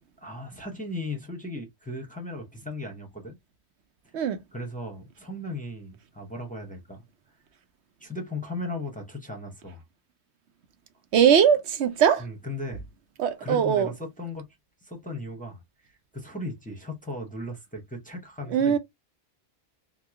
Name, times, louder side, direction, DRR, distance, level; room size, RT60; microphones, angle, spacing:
voice 1, 0.2-3.4 4.0-4.1 4.5-7.0 8.0-9.8 12.2-12.9 13.4-14.5 14.8-18.8, left 2 dB, 10° left, 0.7 m, -37 dB
voice 2, 11.1-12.2 13.2-13.9 18.5-18.8, right 8 dB, 80° right, 0.9 m, -20 dB
3.0 x 2.2 x 3.4 m
omnidirectional pair, 1.1 m